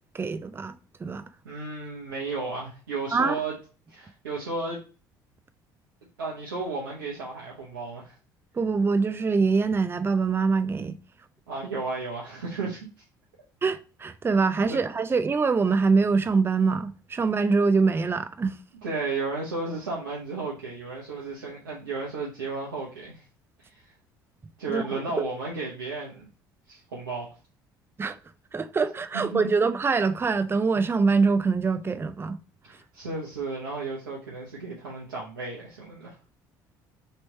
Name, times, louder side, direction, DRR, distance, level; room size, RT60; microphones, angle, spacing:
voice 1, 0.1-0.7 1.0-1.2 3.1-3.4 8.5-11.0 13.6-18.6 24.7-25.0 28.0-28.2 28.5-32.4, right 4 dB, 20° right, 0.4 m, -24 dB
voice 2, 1.4-3.6 3.9-4.8 6.2-8.2 11.5-12.9 14.7-14.8 18.8-23.2 23.6-23.9 24.6-26.3 26.7-27.3 29.1-29.5 32.7-36.2, right 3 dB, 90° right, 0.9 m, -33 dB
3.3 x 3.0 x 4.1 m
hypercardioid pair, 65°, 11 cm